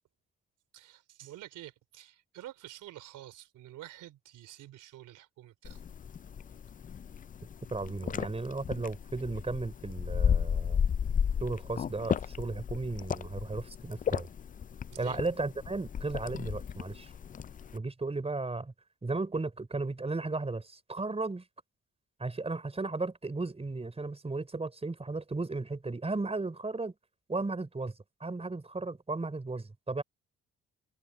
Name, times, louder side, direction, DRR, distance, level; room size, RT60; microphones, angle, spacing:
voice 1, 0.7-5.8 14.9-15.2, right 14 dB, 85° right, 3.4 m, -48 dB
sound 1, 5.6-17.8, left 7 dB, 30° left, 0.4 m, -34 dB
voice 2, 7.7-10.8 11.4-14.3 15.0-17.1 17.7-18.7 19.0-21.4 22.2-26.9 27.3-27.9 28.2-30.0, right 3 dB, 20° right, 4.8 m, -35 dB
cardioid pair, 90°, 30 cm